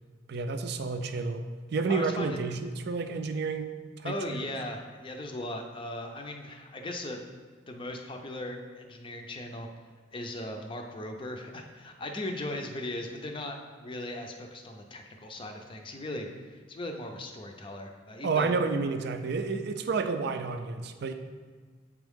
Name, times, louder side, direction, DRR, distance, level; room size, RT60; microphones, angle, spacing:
voice 1, 0.3-3.7 4.0-4.5 18.2-21.1, right 4 dB, 60° right, 8 dB, 0.4 m, -30 dB
voice 2, 1.9-2.4 4.0-7.2 7.7-9.7 10.1-18.5, left 1 dB, 25° left, 3 dB, 0.5 m, -38 dB
8.3 x 3.6 x 3.5 m, 1.5 s
head